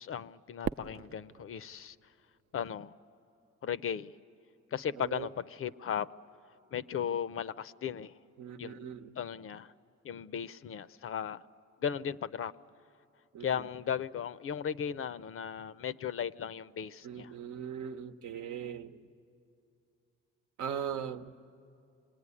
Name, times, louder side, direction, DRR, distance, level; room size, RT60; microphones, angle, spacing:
voice 1, 0.0-2.0 2.5-2.9 3.6-4.1 4.7-6.1 6.7-8.1 8.6-8.9 9.2-9.7 10.0-11.4 11.8-12.5 13.4-17.3, left 8 dB, 45° left, 0.5 m, -36 dB
Fireworks, 0.6-3.0, right 8 dB, 45° right, 0.5 m, -41 dB
voice 2, 5.0-5.3 8.4-9.2 13.3-13.5 17.0-19.0 20.6-21.4, right 8 dB, 75° right, 1.0 m, -39 dB
26.5 x 20.5 x 9.7 m
cardioid pair, 90°, 30 cm